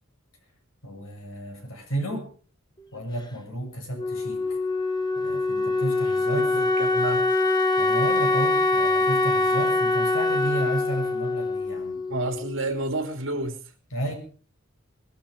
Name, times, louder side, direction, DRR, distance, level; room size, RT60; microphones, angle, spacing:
voice 1, 0.8-2.3 2.9-4.6 5.1-6.5 7.8-12.0 13.9-14.1, right 1 dB, 85° left, 3 dB, 6.8 m, -32 dB
Wind instrument woodwind instrument, 4.0-12.7, left 2 dB, 20° left, 1.4 m, -24 dB
voice 2, 6.3-7.3 12.1-13.6, right 2 dB, 65° right, 6 dB, 3.3 m, -30 dB
20.5 x 12.0 x 5.4 m, 0.41 s
head